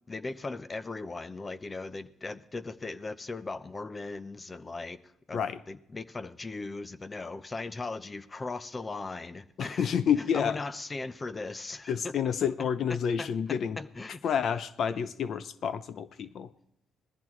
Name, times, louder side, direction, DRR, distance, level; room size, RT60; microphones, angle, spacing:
voice 1, 0.1-5.4 5.7-9.9 10.3-12.1 12.9-14.2, left 3 dB, 25° left, 0.7 m, -38 dB
voice 2, 9.6-10.6 11.9-13.8 14.2-16.5, left 7 dB, 65° left, 0.6 m, -29 dB
19.5 x 14.5 x 3.2 m
cardioid pair, 90°, 0 cm